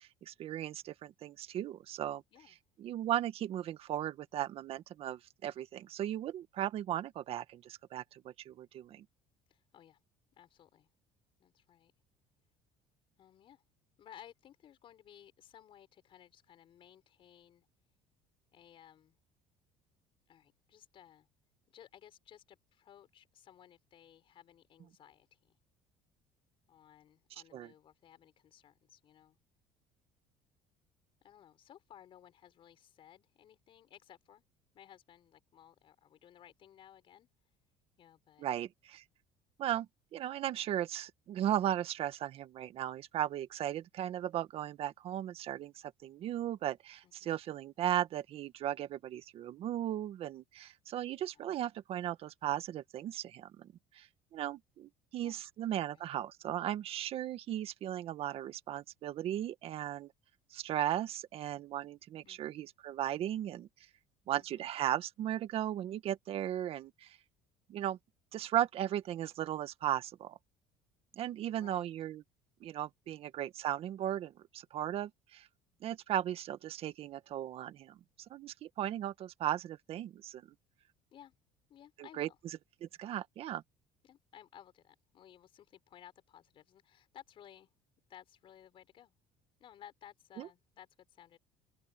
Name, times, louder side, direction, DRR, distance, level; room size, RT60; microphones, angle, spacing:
voice 1, 0.0-2.2 2.8-9.1 27.5-27.7 38.4-39.0 39.6-54.1 54.3-60.1 60.5-63.7 64.3-67.2 67.7-68.0 68.3-70.4 71.2-72.2 72.6-75.5 75.8-78.0 78.3-80.4 82.0-82.3 82.8-83.6 90.4-90.5, right 11 dB, 55° right, 1.8 m, -36 dB
voice 2, 9.5-10.0 10.4-10.9 11.4-11.9 13.2-13.6 14.0-17.7 18.5-19.2 20.3-21.3 21.7-25.6 26.7-29.4 31.2-34.4 34.7-37.3 38.0-38.5 47.0-47.3 55.2-56.1 62.2-62.4 64.3-64.7 71.5-71.9 73.0-73.2 81.1-81.3 81.7-82.4 84.0-87.7 88.1-89.1 89.6-91.4, left 10 dB, 50° left, 4.6 m, -58 dB
open air
cardioid pair, 115°, 12 cm